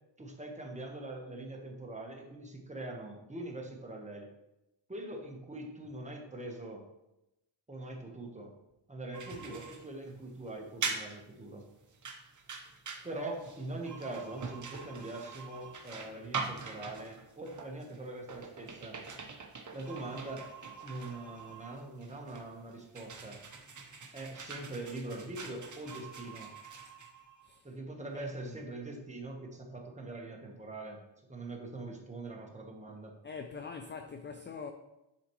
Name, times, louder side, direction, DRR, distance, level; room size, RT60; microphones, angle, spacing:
voice 1, 0.2-4.3 4.9-6.8 7.7-8.5 8.9-11.6 13.0-19.0 19.7-20.4 20.8-23.4 24.1-26.5 27.6-31.0 31.3-33.2, right 2 dB, 15° right, 1.2 m, -43 dB
sound 1, 9.1-27.6, right 4 dB, 35° right, 1.0 m, -43 dB
voice 2, 33.2-34.7, left 5 dB, 25° left, 0.4 m, -43 dB
10.0 x 4.1 x 3.1 m
cardioid pair, 115°, 49 cm